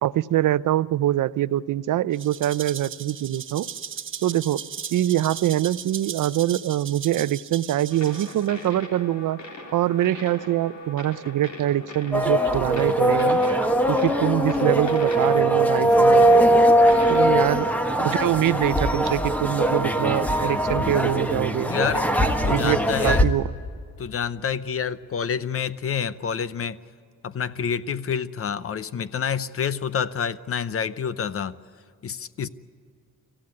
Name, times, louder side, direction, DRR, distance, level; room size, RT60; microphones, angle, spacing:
voice 1, 0.0-3.7 4.2-4.6 4.9-9.4 9.7-13.4 13.9-16.3 17.1-17.7 18.0-21.7 22.5-22.8 23.0-23.4, right 13 dB, 75° right, 17 dB, 0.6 m, -24 dB
Rattle (instrument), 2.1-8.7, right 7 dB, 40° right, 1.0 m, -37 dB
sound 1, 7.9-19.7, left 1 dB, 65° left, 3.8 m, -41 dB
sound 2, 12.1-23.2, right 1 dB, 5° left, 1.4 m, -20 dB
voice 2, 21.7-22.1 22.4-23.2 24.0-26.8 27.2-31.6 32.0-32.5, left 7 dB, 45° left, 15 dB, 0.7 m, -28 dB
26.0 x 15.0 x 9.7 m, 2.2 s
wide cardioid pair, 145°, 31 cm